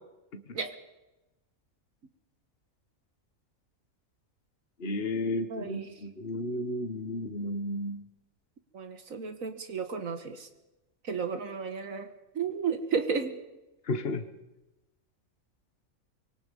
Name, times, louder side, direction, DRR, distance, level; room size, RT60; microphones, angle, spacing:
voice 1, 4.8-8.0 13.9-14.2, left 1 dB, 45° left, 8 dB, 1.7 m, -33 dB
voice 2, 5.5-5.9 8.7-10.5 11.0-12.1 12.3-13.4, right 5 dB, 75° right, 8 dB, 1.9 m, -33 dB
25.5 x 23.5 x 5.4 m, 0.99 s
omnidirectional pair, 1.4 m